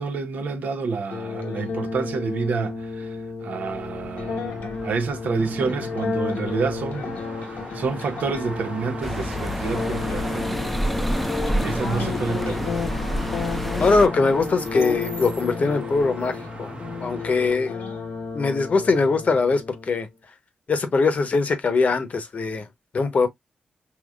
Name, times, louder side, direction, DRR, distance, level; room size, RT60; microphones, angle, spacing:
voice 1, 0.0-7.2 7.7-10.7 11.6-12.9, right 4 dB, 75° right, 0.6 m, -29 dB
sound 1, 1.1-20.1, left 4 dB, 85° left, 0.9 m, -32 dB
sound 2, 3.7-17.6, right 2 dB, 40° right, 0.9 m, -39 dB
sound 3, 9.0-14.1, equal, 5° left, 0.5 m, -28 dB
voice 2, 13.8-16.7 17.0-17.7 18.3-20.1 20.7-22.7 22.9-23.3, left 4 dB, 55° left, 0.8 m, -21 dB
3.8 x 2.9 x 2.3 m
cardioid pair, 60°, 3 cm